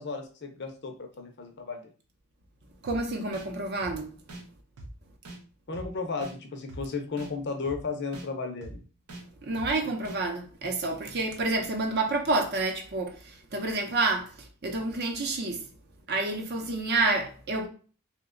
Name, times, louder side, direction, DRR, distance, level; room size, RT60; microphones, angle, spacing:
voice 1, 0.0-1.8 5.7-8.8, left 4 dB, 50° left, 0.6 m, -34 dB
voice 2, 2.8-4.1 9.4-15.6 16.1-17.7, right 3 dB, 45° right, 0.6 m, -29 dB
sound 1, 2.9-3.0 3.3-3.5 3.8-3.9 4.3-4.4 4.8-4.9 5.3-5.4 5.7-5.9 6.2-6.3 6.7-6.8 7.2-7.3 7.7-7.8 8.1-8.3 8.6-8.7 9.1-9.2 9.6-9.7 10.1-10.2, right 1 dB, 85° right, 0.7 m, -42 dB
2.9 x 2.2 x 3.6 m
head